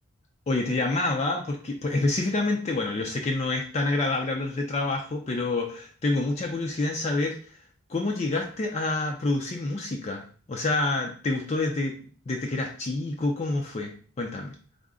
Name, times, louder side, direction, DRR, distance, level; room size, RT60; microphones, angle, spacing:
voice 1, 0.5-7.4 7.9-12.0 12.3-13.9 14.2-14.5, left 2 dB, 30° left, 1 dB, 0.4 m, -27 dB
3.5 x 2.1 x 3.6 m, 0.41 s
head